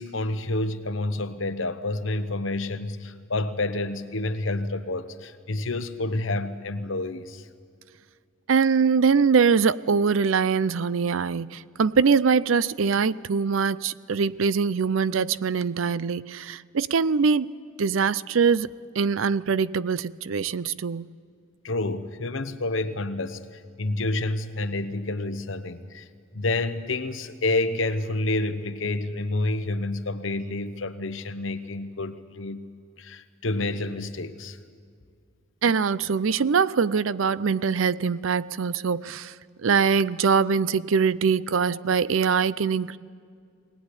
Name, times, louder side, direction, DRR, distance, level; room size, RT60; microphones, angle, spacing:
voice 1, 0.0-7.4 21.6-26.0 26.3-32.6 33.0-34.6 41.7-41.8, left 2 dB, 70° left, 1.1 m, -29 dB
voice 2, 8.5-21.1 35.6-39.3 39.6-43.0, right 5 dB, 75° right, 0.5 m, -23 dB
22.0 x 18.5 x 9.8 m
head